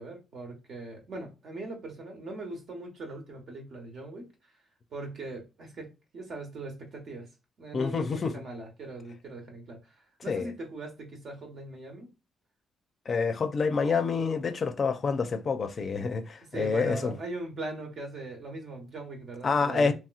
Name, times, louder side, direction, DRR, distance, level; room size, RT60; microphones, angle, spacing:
voice 1, 0.0-4.3 4.9-7.3 7.6-12.1 16.5-19.9, right 2 dB, 60° right, 1.2 m, -40 dB
voice 2, 7.7-8.4 10.3-10.5 13.1-17.1 19.4-19.9, left 5 dB, 45° left, 0.5 m, -27 dB
3.0 x 2.9 x 2.3 m
cardioid pair, 90°, 0 cm